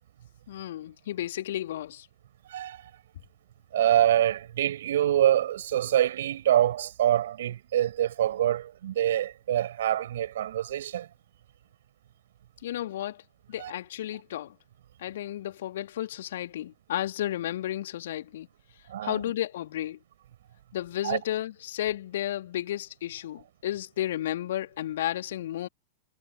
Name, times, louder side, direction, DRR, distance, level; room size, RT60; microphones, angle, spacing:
voice 1, 0.5-2.1 12.6-13.2 13.5-14.6 15.0-18.5 19.0-20.0 20.7-25.7, left 12 dB, 60° left, 3.4 m, -33 dB
voice 2, 2.5-2.9 3.7-11.1 13.6-13.7 18.9-19.2 21.0-21.2, right 11 dB, 60° right, 6.6 m, -25 dB
figure-of-eight pair, 90°, 0 cm